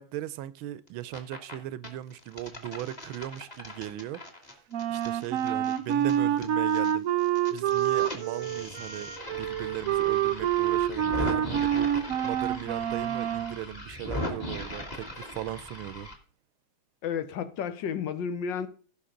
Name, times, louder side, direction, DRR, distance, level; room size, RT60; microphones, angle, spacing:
voice 1, 0.0-4.2 4.9-7.1 7.5-16.1, right 13 dB, 85° right, 1.5 m, -38 dB
sound 1, 0.9-1.5 1.8-6.9 7.2-16.1, left 1 dB, 20° left, 1.8 m, -39 dB
Wind instrument woodwind instrument, 4.7-13.6, right 10 dB, 70° right, 0.8 m, -27 dB
voice 2, 17.0-18.7, left 7 dB, 70° left, 1.5 m, -32 dB
16.0 x 5.8 x 3.8 m
omnidirectional pair, 2.2 m